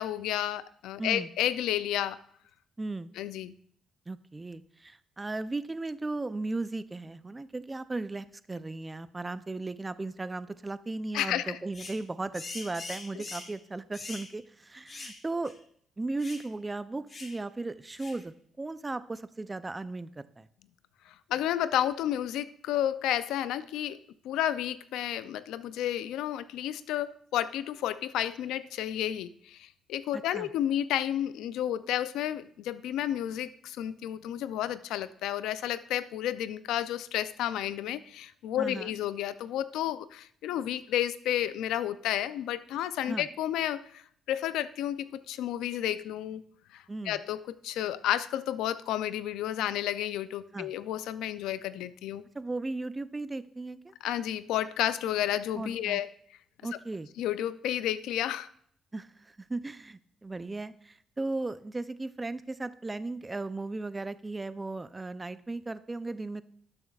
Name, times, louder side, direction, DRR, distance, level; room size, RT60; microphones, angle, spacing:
voice 1, 0.0-2.2 3.2-3.5 11.1-11.6 13.2-13.3 21.1-24.0 24.2-46.4 46.7-52.2 54.0-56.1 57.2-58.5, left 11 dB, 90° left, 15 dB, 0.4 m, -31 dB
voice 2, 2.8-3.1 4.1-15.5 16.0-20.5 30.1-30.5 38.6-38.9 43.1-43.3 46.9-47.2 50.5-50.7 52.3-53.9 55.5-56.0 56.6-57.1 58.9-66.4, right 2 dB, 20° right, 14 dB, 0.5 m, -36 dB
sound 1, 11.7-12.0 12.3-13.6 13.9-14.3 14.9-15.2 15.5-15.6 16.2-16.5 17.1-17.4 18.0-18.2, left 3 dB, 40° left, 1.5 m, -42 dB
12.0 x 7.0 x 2.4 m, 0.64 s
cardioid pair, 90°, 0 cm